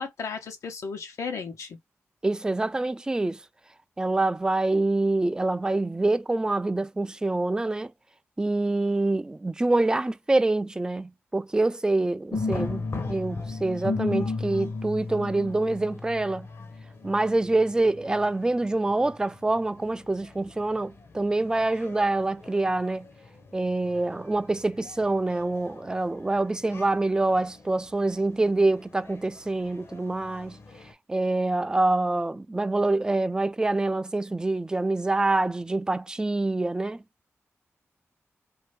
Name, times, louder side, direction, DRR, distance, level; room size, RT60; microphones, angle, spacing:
voice 1, 0.0-1.8, left 5 dB, 90° left, 1.0 m, -34 dB
voice 2, 2.2-3.4 4.0-7.9 8.4-16.5 17.0-23.1 23.5-30.6 31.1-37.0, right 2 dB, 15° right, 0.3 m, -26 dB
sound 1, 12.3-30.9, left 3 dB, 60° left, 1.0 m, -37 dB
2.7 x 2.6 x 3.3 m
cardioid pair, 65°, 5 cm